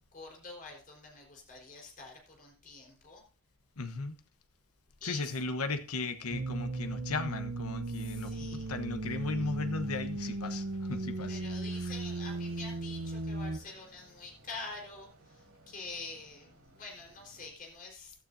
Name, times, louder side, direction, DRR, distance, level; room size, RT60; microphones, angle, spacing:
voice 1, 0.1-3.2 5.0-5.3 7.9-8.7 11.3-15.1 15.3-18.1, left 3 dB, 40° left, 4.3 m, -46 dB
voice 2, 3.8-4.1 5.0-11.4 11.8-11.9, left 3 dB, 80° left, 1.2 m, -36 dB
sound 1, 6.3-13.6, right 2 dB, 55° right, 0.7 m, -37 dB
sound 2, 8.0-17.5, right 1 dB, 80° right, 3.9 m, -61 dB
16.0 x 12.0 x 2.7 m
head